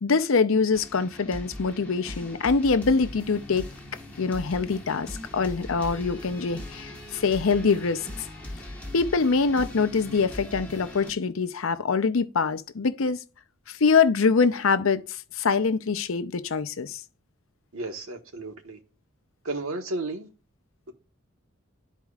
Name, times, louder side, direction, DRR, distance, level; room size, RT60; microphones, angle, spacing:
voice 1, 0.0-3.7 4.2-8.1 8.9-13.2 13.7-15.0 15.4-17.0, left 4 dB, 75° left, 0.6 m, -24 dB
sound 1, 0.7-11.1, left 1 dB, 10° left, 1.3 m, -40 dB
voice 2, 17.7-18.8 19.4-20.3, right 2 dB, 90° right, 1.3 m, -33 dB
12.0 x 4.5 x 2.4 m
head